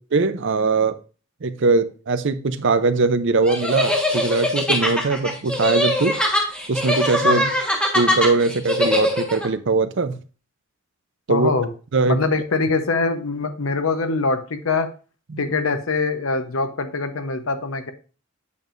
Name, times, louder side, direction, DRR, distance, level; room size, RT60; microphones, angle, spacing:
voice 1, 0.1-1.0 1.4-6.2 6.7-7.4 7.9-10.2 11.3-11.5 11.9-12.2 15.3-15.6, right 3 dB, 60° right, 12 dB, 0.6 m, -21 dB
sound 1, 3.5-9.5, left 1 dB, 5° left, 1.4 m, -22 dB
voice 2, 11.3-11.7 12.1-14.9 15.4-17.9, left 3 dB, 85° left, 8 dB, 0.9 m, -23 dB
8.5 x 6.8 x 2.6 m, 0.37 s
head